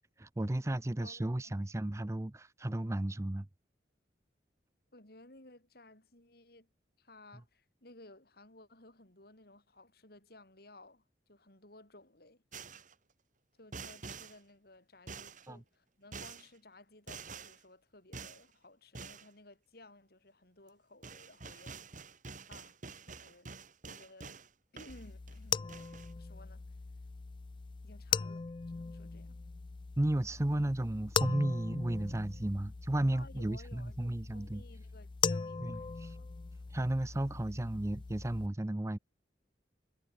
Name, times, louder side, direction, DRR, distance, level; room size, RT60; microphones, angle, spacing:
voice 1, 0.2-3.5 15.5-15.6 30.0-34.6 35.6-36.1 36.7-39.0, right 1 dB, 15° right, 0.6 m, -34 dB
voice 2, 1.0-1.5 4.9-6.7 7.0-12.4 13.5-21.9 22.5-22.8 23.0-23.6 23.9-24.4 24.7-25.9 26.2-26.6 27.8-29.4 33.1-36.3, left 2 dB, 60° left, 5.5 m, -57 dB
sound 1, 12.5-12.9 13.7-14.4 15.1-15.5 16.1-16.5 17.1-17.6 18.1-18.4 18.9-19.3 20.7-20.8 21.0-24.5 24.8-25.4 25.7-26.1, right 4 dB, 45° right, 3.8 m, -47 dB
sound 2, 24.9-38.5, left 6 dB, 25° left, 0.3 m, -39 dB
head